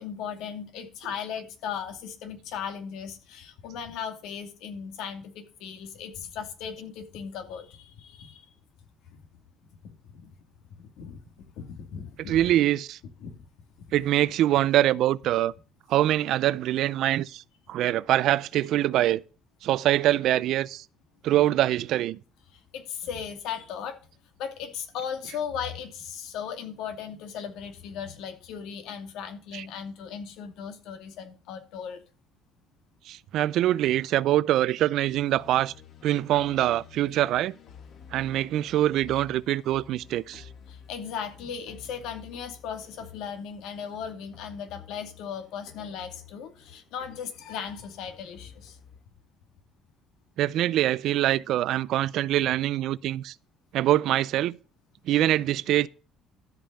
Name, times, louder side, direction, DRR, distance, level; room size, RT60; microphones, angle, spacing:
voice 1, 0.0-8.4 10.7-12.4 13.2-13.3 22.7-24.0 24.4-32.0 40.7-48.8, left 7 dB, 80° left, 2.5 m, -37 dB
voice 2, 12.3-13.0 13.9-15.5 15.9-17.4 17.7-19.2 19.6-20.8 21.2-22.2 29.5-29.6 33.1-35.7 36.0-37.5 38.1-40.4 50.4-53.3 53.7-54.6 55.1-55.9, right 13 dB, 65° right, 0.4 m, -24 dB
sound 1, 35.0-49.0, left 7 dB, 50° left, 2.2 m, -51 dB
13.0 x 5.4 x 6.8 m
cardioid pair, 150°, 0 cm